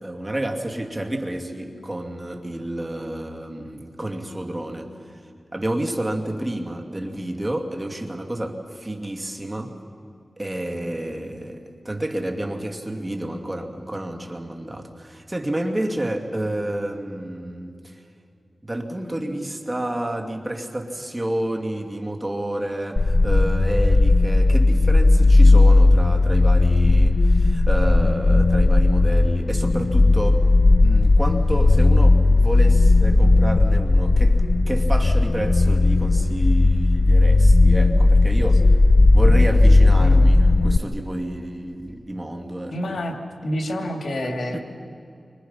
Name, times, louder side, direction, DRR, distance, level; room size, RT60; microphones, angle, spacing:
voice 1, 0.0-5.2 5.5-9.7 10.4-18.0 18.6-30.5 30.8-38.7 39.1-43.0 44.2-44.6, right 1 dB, 25° right, 3 dB, 2.6 m, -29 dB
sound 1, 23.0-40.8, left 2 dB, 45° left, 0.5 m, -16 dB
voice 2, 40.0-40.3 42.7-43.2 43.4-44.6, equal, 75° left, 2 dB, 2.9 m, -27 dB
29.0 x 25.5 x 5.7 m, 2.6 s
cardioid pair, 60°, 0 cm